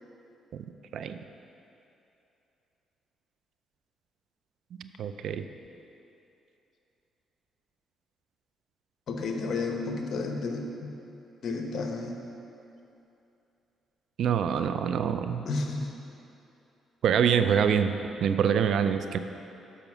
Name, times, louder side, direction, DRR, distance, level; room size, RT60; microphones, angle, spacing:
voice 1, 4.8-5.4 14.2-15.4 17.0-19.2, right 7 dB, 70° right, 10 dB, 0.4 m, -25 dB
voice 2, 9.1-10.9 11.4-12.2 15.5-15.9, left 3 dB, 55° left, 2 dB, 1.0 m, -32 dB
7.0 x 5.8 x 6.0 m, 2.8 s
cardioid pair, 90°, 0 cm